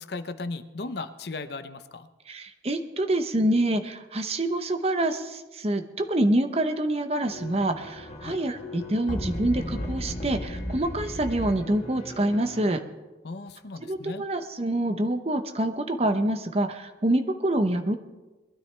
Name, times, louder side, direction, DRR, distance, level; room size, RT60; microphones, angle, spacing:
voice 1, 0.0-2.1 8.2-8.4 13.2-14.2, left 3 dB, 60° left, 11 dB, 0.7 m, -36 dB
voice 2, 2.3-12.8 13.8-18.0, right 1 dB, 35° right, 7 dB, 0.8 m, -26 dB
sound 1, 7.3-12.7, equal, 35° left, 1.4 m, -35 dB
21.5 x 12.5 x 3.4 m, 1.2 s
head